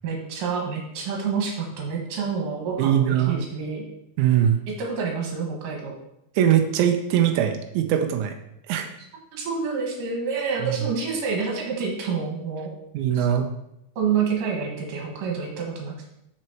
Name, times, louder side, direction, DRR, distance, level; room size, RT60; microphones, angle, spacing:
voice 1, 0.0-3.9 4.7-5.9 9.3-12.7 13.1-13.3 14.0-16.1, right 5 dB, 65° right, 0 dB, 3.0 m, -28 dB
voice 2, 2.8-3.4 4.2-4.6 6.4-8.3 8.7-8.9 10.6-10.7 12.9-13.5, right 10 dB, 85° right, 4 dB, 1.7 m, -21 dB
6.1 x 6.0 x 4.5 m, 0.82 s
omnidirectional pair, 4.2 m